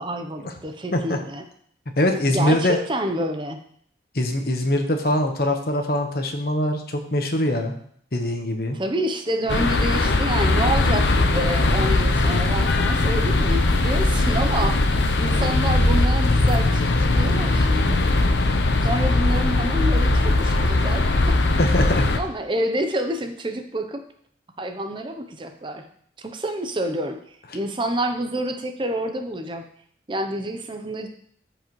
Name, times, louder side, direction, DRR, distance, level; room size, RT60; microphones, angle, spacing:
voice 1, 0.0-1.4 2.3-3.6 8.7-18.0 18.8-21.4 22.2-24.0 24.6-25.8 26.2-27.2 27.5-29.7 30.1-31.1, right 1 dB, 25° right, 6 dB, 0.6 m, -28 dB
voice 2, 2.0-2.8 4.1-7.7 8.1-8.8 21.6-22.1, left 1 dB, 55° left, 5 dB, 1.1 m, -22 dB
sound 1, 9.5-22.2, left 2 dB, 85° left, 0.8 m, -20 dB
13.5 x 5.0 x 3.1 m, 0.63 s
head